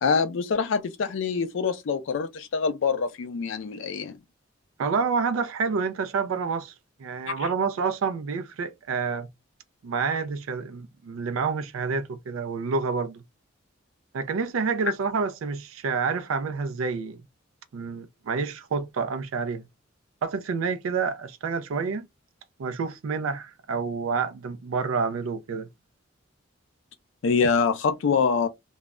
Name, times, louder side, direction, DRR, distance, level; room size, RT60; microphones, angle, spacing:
voice 1, 0.0-4.2 7.3-7.5 27.2-28.5, left 5 dB, 70° left, 0.4 m, -25 dB
voice 2, 4.8-6.7 7.0-9.3 9.8-13.2 14.1-17.2 17.7-19.6 20.2-22.0 22.6-25.7, right 5 dB, 90° right, 0.4 m, -28 dB
2.2 x 2.0 x 3.5 m
head